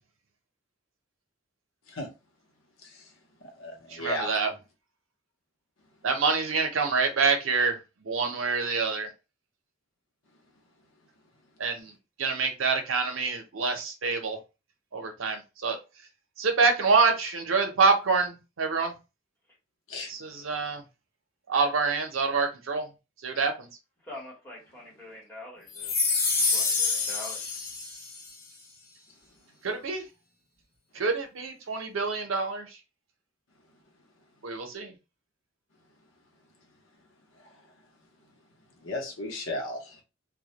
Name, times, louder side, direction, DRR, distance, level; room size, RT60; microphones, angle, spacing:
voice 1, 2.8-3.1 3.4-4.3 19.9-20.1 37.4-37.6 38.8-40.0, left 1 dB, 85° left, 0.8 m, -35 dB
voice 2, 3.9-4.5 6.0-7.8 8.0-9.1 11.6-11.9 12.2-14.4 14.9-15.8 16.4-18.9 20.1-20.8 21.5-22.9 23.2-23.7 29.6-30.0 30.9-32.8 34.4-34.9, right 4 dB, 90° right, 0.6 m, -26 dB
voice 3, 24.0-25.9 26.5-27.6, left 1 dB, 10° left, 1.0 m, -44 dB
sound 1, 25.7-28.3, left 4 dB, 50° left, 0.7 m, -27 dB
2.2 x 2.1 x 2.8 m
head